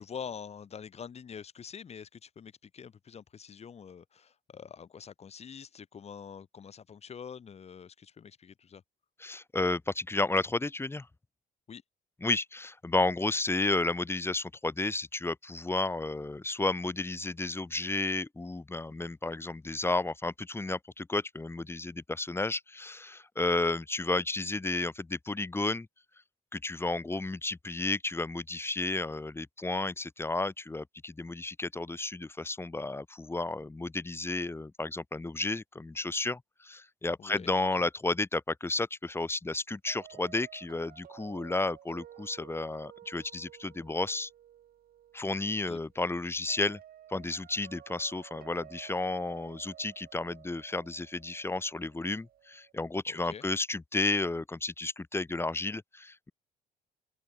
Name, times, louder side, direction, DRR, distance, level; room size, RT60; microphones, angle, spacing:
voice 1, 0.0-8.8 11.7-11.8 37.2-37.5 37.8-37.9 45.7-45.8 53.1-53.4, left 7 dB, 40° left, 4.0 m, -45 dB
voice 2, 9.2-11.1 12.2-25.9 26.5-44.3 45.1-46.8 47.1-56.3, left 2 dB, 15° left, 2.6 m, -32 dB
sound 1, 39.9-52.7, right 11 dB, 60° right, 4.8 m, -54 dB
open air
cardioid pair, 110°, 17 cm